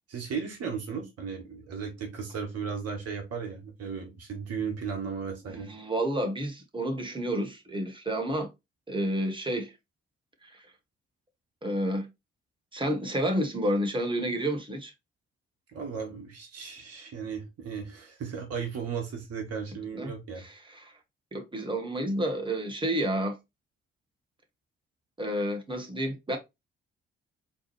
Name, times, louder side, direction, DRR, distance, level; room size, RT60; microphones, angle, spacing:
voice 1, 0.1-5.7 15.7-20.4, right 6 dB, 55° right, 1.4 m, -35 dB
voice 2, 5.5-8.5 8.9-9.7 10.4-10.6 11.6-12.1 12.7-14.9 19.9-20.9 21.3-23.4 25.2-26.4, right 1 dB, 15° right, 1.3 m, -30 dB
4.1 x 3.1 x 3.1 m
figure-of-eight pair, 40°, 30 cm